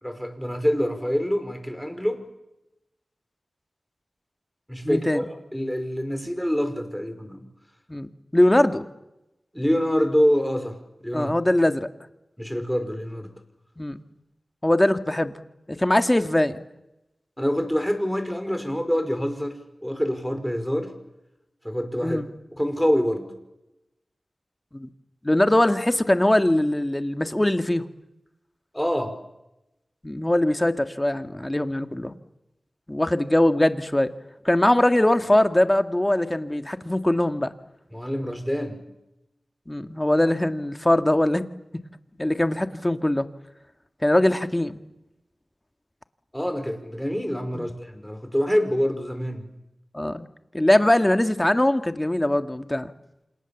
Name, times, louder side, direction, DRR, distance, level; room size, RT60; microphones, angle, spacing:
voice 1, 0.0-2.2 4.7-7.5 9.5-11.3 12.4-13.3 17.4-20.9 21.6-22.2 22.6-23.3 28.7-29.2 37.9-38.8 46.3-49.5, equal, 5° left, 7 dB, 5.1 m, -26 dB
voice 2, 4.8-5.2 7.9-8.9 11.1-11.9 13.8-14.0 14.6-15.4 15.7-16.6 22.0-22.3 24.7-24.9 25.2-27.8 30.0-32.2 32.9-34.1 34.5-37.5 39.7-41.4 42.2-43.3 44.0-44.8 47.5-47.7 49.9-50.3 50.5-52.9, left 1 dB, 20° left, 8 dB, 1.8 m, -21 dB
29.0 x 27.5 x 7.3 m, 0.92 s
wide cardioid pair, 60°, 0 cm